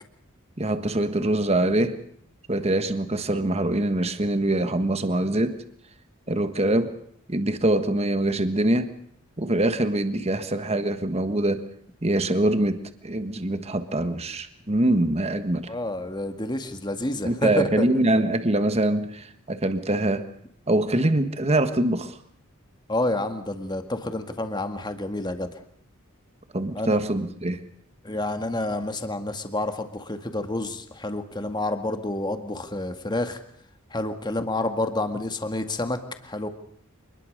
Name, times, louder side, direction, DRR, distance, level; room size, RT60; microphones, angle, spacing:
voice 1, 0.6-2.0 2.5-5.6 6.3-6.9 7.3-8.9 9.4-11.6 12.0-12.8 13.0-15.7 17.2-20.3 20.7-22.2 26.5-27.6, right 1 dB, 30° right, 9 dB, 1.5 m, -24 dB
voice 2, 15.7-17.8 22.9-25.5 26.8-27.0 28.0-33.4 33.9-36.5, left 2 dB, 20° left, 7 dB, 2.0 m, -29 dB
26.0 x 21.0 x 6.6 m, 0.64 s
head